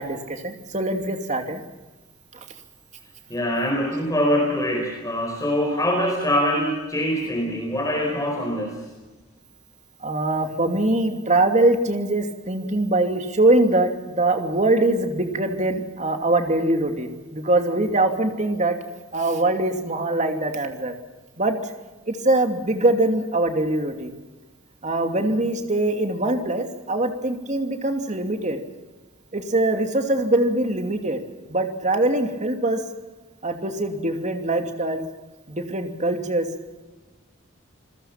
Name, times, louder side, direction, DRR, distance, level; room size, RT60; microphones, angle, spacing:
voice 1, 0.0-1.6 10.0-18.8 19.1-20.9 21.4-21.7 22.1-24.1 24.8-28.6 29.3-31.2 31.5-32.8 33.4-35.0 35.5-36.5, right 2 dB, 35° right, 5 dB, 2.7 m, -22 dB
voice 2, 3.3-8.8, equal, 15° left, 0 dB, 4.6 m, -24 dB
28.0 x 20.5 x 5.9 m, 1.2 s
head